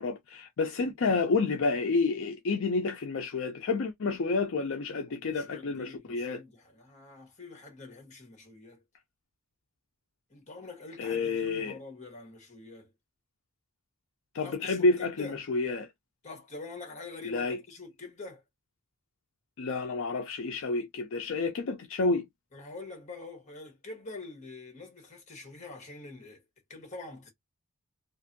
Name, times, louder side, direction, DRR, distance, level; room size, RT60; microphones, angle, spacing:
voice 1, 0.0-6.4 11.0-11.8 14.3-15.9 17.2-17.6 19.6-22.3, left 3 dB, 60° left, 0.4 m, -29 dB
voice 2, 5.1-8.8 10.3-12.9 14.4-15.4 16.2-18.4 22.5-26.4 26.7-27.3, left 3 dB, 35° left, 1.2 m, -45 dB
2.5 x 2.5 x 2.6 m
head